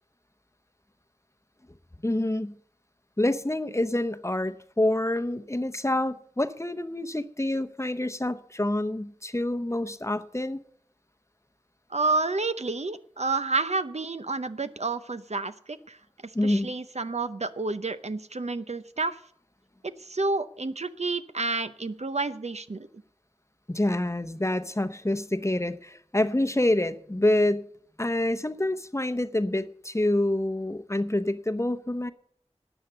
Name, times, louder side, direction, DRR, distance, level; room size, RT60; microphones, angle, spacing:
voice 1, 2.0-2.5 3.2-10.6 16.3-16.7 23.7-27.7 28.0-32.1, left 1 dB, 25° left, 0.8 m, -27 dB
voice 2, 11.9-16.0 16.4-19.1 20.0-22.9, right 3 dB, 70° right, 0.7 m, -29 dB
13.0 x 8.3 x 6.7 m
wide cardioid pair, 40°, 12 cm